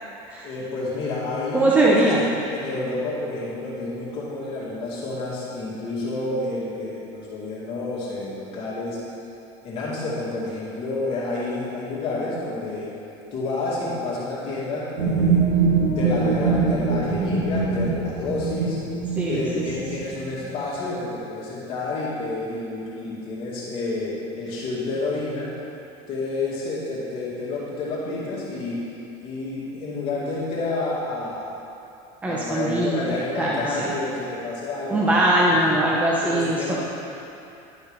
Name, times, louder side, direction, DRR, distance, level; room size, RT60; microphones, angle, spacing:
voice 1, 0.4-9.0 9.6-12.9 13.3-15.4 16.0-18.8 19.3-25.5 26.1-28.8 29.2-31.5 32.3-35.2 36.2-36.8, left 2 dB, 40° left, -8 dB, 2.3 m, -29 dB
voice 2, 1.5-2.3 19.2-19.6 32.2-33.0 33.3-33.9 34.9-36.8, right 1 dB, 10° right, -5 dB, 0.8 m, -21 dB
sound 1, 15.0-20.6, right 4 dB, 70° right, 1.5 m, -23 dB
11.5 x 5.4 x 5.2 m, 2.8 s
cardioid pair, 150°, 15 cm